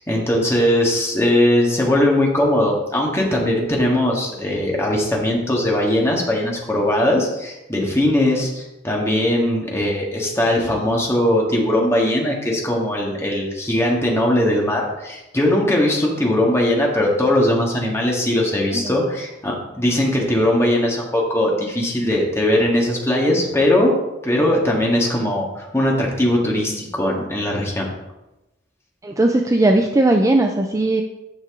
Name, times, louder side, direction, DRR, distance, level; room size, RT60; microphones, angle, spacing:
voice 1, 0.0-23.9 24.2-27.9, left 1 dB, 15° left, -2 dB, 1.8 m, -19 dB
voice 2, 29.0-31.0, right 2 dB, 20° right, 4 dB, 0.5 m, -17 dB
9.5 x 6.2 x 3.7 m, 0.96 s
head